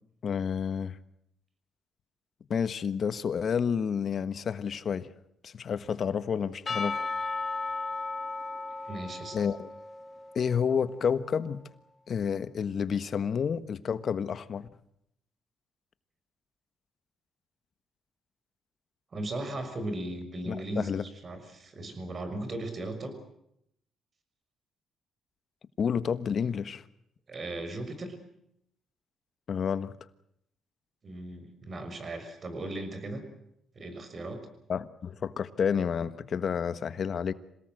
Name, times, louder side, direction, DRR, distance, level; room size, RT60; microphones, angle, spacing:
voice 1, 0.2-1.0 2.5-5.1 5.4-7.0 9.3-9.7 10.3-11.6 12.1-14.7 20.5-21.0 25.8-26.8 29.5-29.9 34.7-37.3, left 7 dB, 55° left, 13 dB, 1.4 m, -30 dB
Percussion / Church bell, 6.7-11.0, left 3 dB, 30° left, 2.3 m, -35 dB
voice 2, 8.8-9.4 19.1-20.9 21.2-23.2 27.3-28.2 31.0-33.2 33.7-34.5, right 1 dB, 40° right, 8 dB, 6.3 m, -37 dB
27.0 x 18.5 x 7.9 m, 0.75 s
cardioid pair, 90°, 0 cm